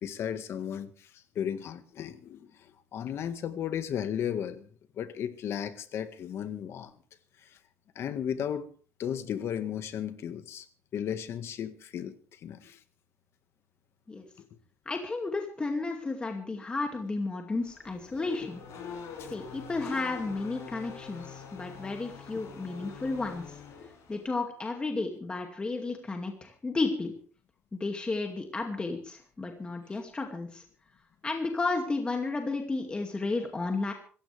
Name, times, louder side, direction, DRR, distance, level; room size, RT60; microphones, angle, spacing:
voice 1, 0.0-4.7 5.0-6.9 7.9-8.7 9.0-10.7 10.9-12.8 18.4-18.5 19.2-19.3 22.8-22.9 23.8-23.9, left 9 dB, 65° left, 10 dB, 1.7 m, -35 dB
voice 2, 14.9-18.6 19.3-23.6 24.1-27.1 27.7-30.6 31.2-33.9, left 3 dB, 20° left, 3 dB, 2.4 m, -33 dB
Race car auto racing / Accelerating revving vroom, 17.6-24.3, left 6 dB, 85° left, 7.4 m, -44 dB
26.0 x 15.0 x 3.5 m, 0.41 s
cardioid pair, 140°, 5 cm